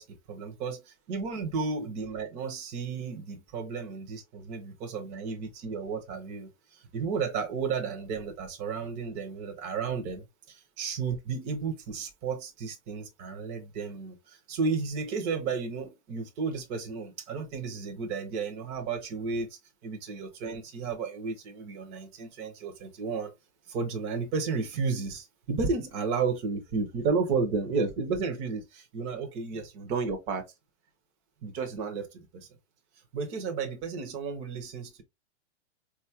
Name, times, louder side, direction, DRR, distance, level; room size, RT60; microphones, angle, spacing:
voice 1, 0.0-23.3 23.7-30.5 31.4-32.5 33.1-35.0, right 5 dB, 20° right, 0.5 m, -33 dB
3.9 x 2.3 x 2.6 m
supercardioid pair, 160°, 34 cm